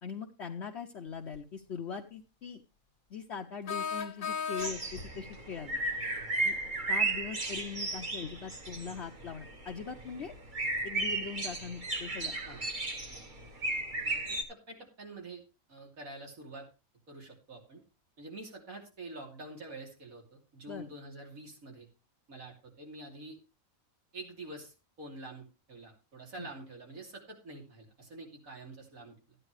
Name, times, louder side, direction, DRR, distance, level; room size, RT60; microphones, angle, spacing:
voice 1, 0.0-2.6 3.1-5.8 6.4-6.6 6.9-10.3 10.8-12.4 20.7-20.8 26.4-26.5, left 6 dB, 55° left, 2 dB, 1.0 m, -41 dB
sound 1, 1.3-1.4 3.7-5.1, left 6 dB, 80° left, 1.8 m, -35 dB
sound 2, 4.6-14.4, right 2 dB, 35° right, 1.5 m, -35 dB
voice 2, 14.0-15.4 15.7-16.7 17.1-17.8 18.2-21.9 22.3-23.4 24.1-29.4, right 2 dB, 75° right, 0 dB, 3.4 m, -47 dB
13.0 x 10.0 x 3.2 m, 0.30 s
omnidirectional pair, 1.5 m